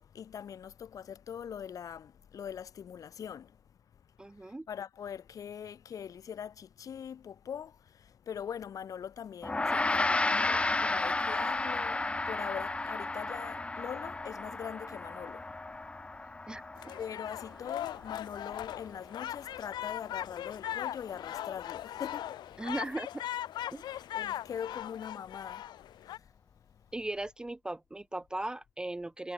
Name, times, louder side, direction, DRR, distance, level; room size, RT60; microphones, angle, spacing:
voice 1, 0.0-3.5 4.7-15.4 17.0-22.3 23.8-25.6 26.0-26.1, left 8 dB, 50° left, 1.1 m, -42 dB
voice 2, 4.2-4.7 16.5-16.6 22.6-23.1 23.7-23.8 26.9-29.3, right 1 dB, 10° right, 0.5 m, -37 dB
Gong, 9.4-19.0, left 2 dB, 15° left, 1.0 m, -33 dB
sound 1, 16.8-26.2, left 12 dB, 75° left, 1.8 m, -39 dB
cardioid pair, 115°, 8 cm